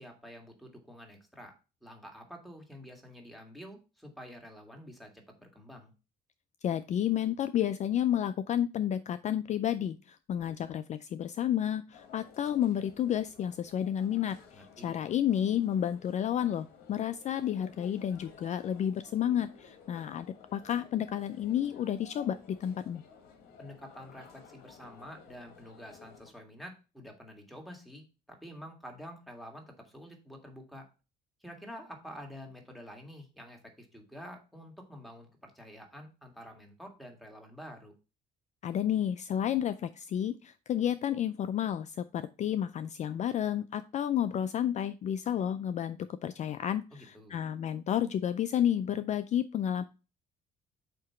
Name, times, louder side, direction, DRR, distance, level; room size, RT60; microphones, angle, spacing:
voice 1, 0.0-1.5 1.8-5.9 14.5-15.0 23.6-30.9 31.4-37.9 46.9-47.4, equal, ahead, 2 dB, 1.9 m, -48 dB
voice 2, 6.6-23.0 38.6-49.8, left 10 dB, 45° left, 12 dB, 0.4 m, -31 dB
sound 1, 11.9-26.3, left 6 dB, 70° left, 1.6 m, -55 dB
7.8 x 2.9 x 5.7 m, 0.32 s
cardioid pair, 110°, 17 cm